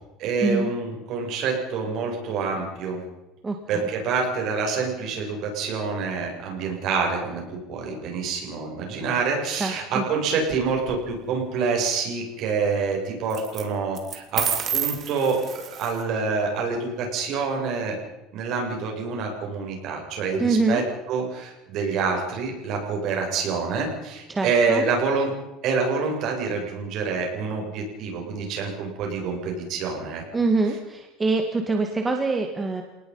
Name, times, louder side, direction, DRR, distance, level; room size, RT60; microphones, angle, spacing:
voice 1, 0.2-3.0 3.7-18.0 18.3-20.8 21.1-25.4 25.6-30.2, right 4 dB, 45° right, 1 dB, 7.8 m, -27 dB
voice 2, 9.6-10.0 20.4-20.8 24.3-24.8 30.3-32.8, right 3 dB, 15° right, 4 dB, 1.9 m, -24 dB
sound 1, 10.4-11.0 13.3-13.6 14.0-16.0, right 8 dB, 30° right, 2.8 m, -29 dB
29.0 x 19.0 x 5.7 m, 1.0 s
cardioid pair, 160°, 0 cm